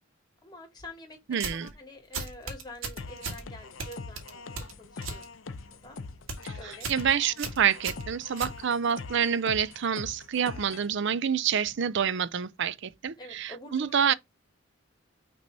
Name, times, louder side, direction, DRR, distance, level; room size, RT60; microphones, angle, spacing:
voice 1, 0.4-5.5 5.8-6.0 6.6-6.9 13.2-14.2, left 2 dB, 20° left, 2.2 m, -47 dB
voice 2, 1.3-1.7 6.4-6.5 6.9-14.1, right 8 dB, 60° right, 0.5 m, -27 dB
sound 1, 1.3-1.7 2.1-3.4 3.8-5.2 5.6-5.9 6.2-6.5 6.8-7.0 7.4-9.0, right 4 dB, 85° right, 1.8 m, -36 dB
sound 2, 3.0-10.9, left 4 dB, 75° left, 0.8 m, -43 dB
6.2 x 3.0 x 5.2 m
head